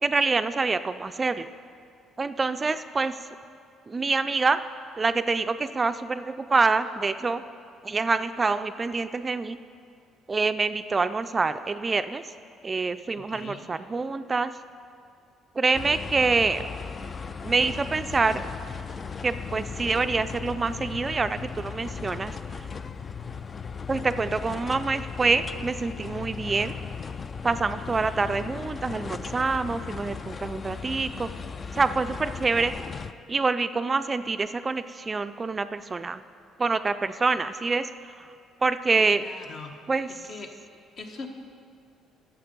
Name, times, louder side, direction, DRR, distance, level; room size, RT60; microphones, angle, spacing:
voice 1, 0.0-1.5 2.2-3.2 3.9-4.6 5.0-7.4 7.8-9.6 10.3-12.2 12.6-14.5 15.6-16.6 17.4-18.5 19.2-22.7 23.9-26.7 27.4-31.3 31.7-32.7 33.3-36.2 36.6-38.3 38.6-39.2 39.9-40.1, right 4 dB, 30° right, 11 dB, 0.4 m, -26 dB
voice 2, 13.2-13.6 39.1-39.8 40.1-40.5 41.0-41.3, left 4 dB, 55° left, 3 dB, 1.2 m, -41 dB
sound 1, 15.7-33.1, left 5 dB, 40° left, 0.4 m, -37 dB
11.5 x 7.2 x 5.3 m, 2.3 s
supercardioid pair, 75°, 0 cm